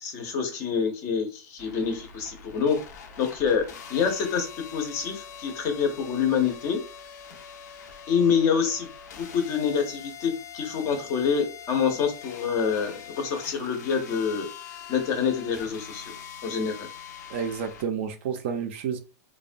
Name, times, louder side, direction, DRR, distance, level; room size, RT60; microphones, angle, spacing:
voice 1, 0.0-2.8 3.2-6.8 8.1-8.9 9.2-14.5 14.9-16.1 16.4-16.9, left 6 dB, 30° left, 0.5 m, -26 dB
sound 1, 1.6-17.8, left 7 dB, 85° left, 0.6 m, -43 dB
voice 2, 17.3-19.0, right 7 dB, 45° right, 0.4 m, -30 dB
2.9 x 2.1 x 2.5 m
supercardioid pair, 170°, 9 cm